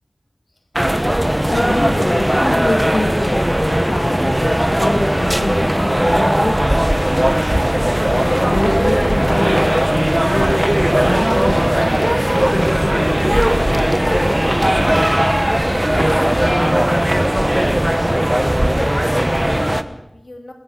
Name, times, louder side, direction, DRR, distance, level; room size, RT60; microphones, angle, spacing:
sound 1, 0.8-19.8, equal, 15° right, 1.4 m, -17 dB
voice 1, 1.4-6.7 8.0-11.9 12.5-14.3, left 1 dB, 90° left, 1 dB, 2.9 m, -24 dB
voice 2, 16.2-17.1 18.6-20.5, left 2 dB, 70° left, 3 dB, 3.4 m, -36 dB
26.5 x 17.0 x 6.7 m, 0.87 s
wide cardioid pair, 45°, 0 cm